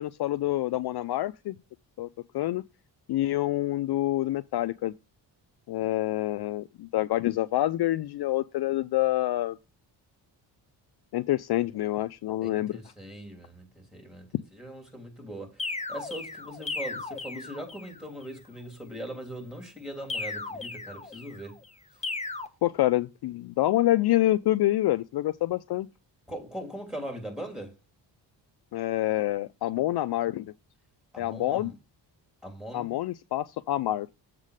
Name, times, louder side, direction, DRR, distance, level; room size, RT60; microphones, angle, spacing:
voice 1, 0.0-1.6 2.0-2.1 2.3-2.6 3.1-4.9 5.7-9.6 11.1-12.8 22.6-25.9 28.7-30.5 31.2-31.7 32.7-34.1, left 15 dB, 60° left, 0.5 m, -27 dB
voice 2, 12.4-14.3 14.5-21.6 26.3-27.7 31.1-31.7 32.4-33.0, right 1 dB, ahead, 3.1 m, -40 dB
sound 1, 15.6-18.0 20.1-21.5 22.0-22.5, left 3 dB, 15° left, 1.0 m, -36 dB
7.4 x 3.7 x 6.3 m
cardioid pair, 80°, 45 cm